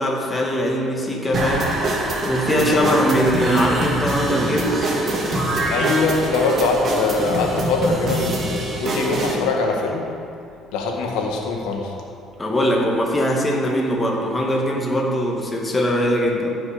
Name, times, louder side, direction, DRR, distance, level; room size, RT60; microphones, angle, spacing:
voice 1, 0.0-1.8 2.2-4.9 12.4-16.5, equal, 20° left, -1 dB, 2.1 m, -21 dB
sound 1, 1.3-9.3, right 2 dB, 45° right, 2.1 m, -24 dB
voice 2, 2.6-3.1 5.7-10.1 10.7-11.9, left 3 dB, 85° left, 0 dB, 1.8 m, -23 dB
15.5 x 6.1 x 5.2 m, 2.5 s
cardioid pair, 100°, 0 cm